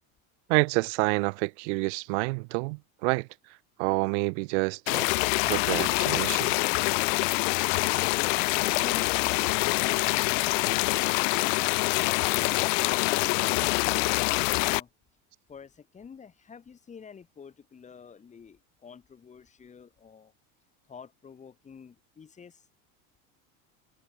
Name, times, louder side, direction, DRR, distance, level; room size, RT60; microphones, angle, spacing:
voice 1, 0.5-3.3 3.8-5.1 5.4-6.6, right 31 dB, 55° right, 0.7 m, -28 dB
sound 1, 4.9-14.8, left 29 dB, 60° left, 2.0 m, -25 dB
voice 2, 7.9-11.0 11.8-14.9 15.5-20.3 20.9-22.6, left 6 dB, 15° left, 6.5 m, -47 dB
supercardioid pair, 165°, 42 cm